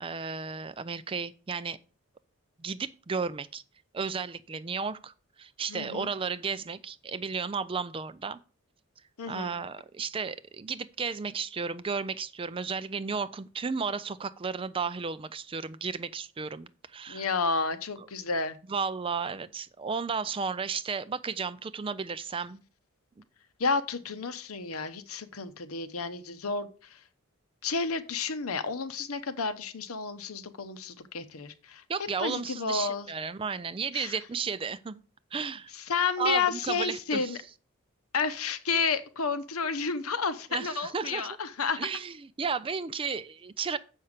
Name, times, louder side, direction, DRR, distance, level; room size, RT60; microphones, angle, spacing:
voice 1, 0.0-1.8 2.6-3.6 3.9-8.4 9.3-17.3 18.0-18.1 18.7-22.6 31.9-35.0 35.3-35.7 36.2-37.4 40.5-41.3 41.8-43.8, right 5 dB, 25° right, 0.4 m, -33 dB
voice 2, 5.7-6.1 9.2-9.5 17.1-18.6 23.6-27.0 27.6-31.8 32.2-33.1 33.9-34.1 35.7-37.4 38.1-41.9, left 4 dB, 85° left, 0.9 m, -31 dB
7.1 x 5.6 x 6.6 m
head